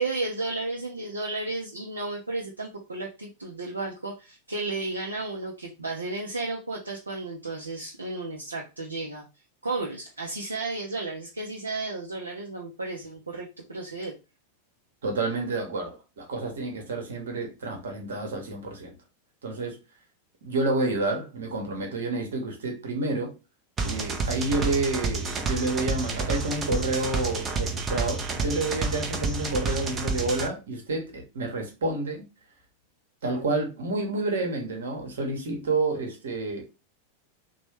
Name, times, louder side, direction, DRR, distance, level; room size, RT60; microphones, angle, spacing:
voice 1, 0.0-9.2 9.6-14.1, right 3 dB, 80° right, 0.5 m, -33 dB
voice 2, 15.0-18.9 19.4-19.8 20.4-23.3 23.8-32.2 33.2-36.6, right 2 dB, 65° right, 1.0 m, -29 dB
sound 1, 23.8-30.5, right 4 dB, 25° right, 0.5 m, -29 dB
3.1 x 2.1 x 3.1 m
figure-of-eight pair, 90°, 0 cm